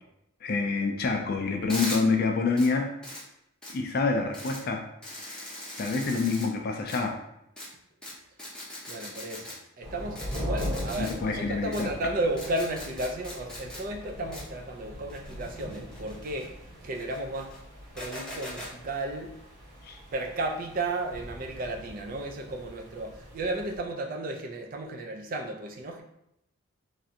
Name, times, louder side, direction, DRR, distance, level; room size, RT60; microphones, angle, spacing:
voice 1, 0.4-2.9 3.7-4.8 5.3-5.4 5.8-7.2 11.0-11.9 19.8-20.0, left 4 dB, 45° left, 0.3 m, -27 dB
sound 1, 1.7-2.0 2.6-2.7 3.0-3.2 3.6-3.7 4.3-4.6 5.0-6.5 6.9-7.0 7.6-7.7 8.0-8.1 8.4-9.6 10.2-11.1 11.7-11.8 12.4-13.8 14.3-14.4 15.1-16.5 16.9-17.6 18.0-18.7, left 1 dB, 5° left, 0.6 m, -39 dB
voice 2, 8.9-17.6 17.9-19.4 20.1-26.0, right 2 dB, 40° right, 0.4 m, -34 dB
sound 2, 9.8-23.8, equal, 90° right, 1.4 m, -41 dB
3.2 x 2.5 x 2.7 m
head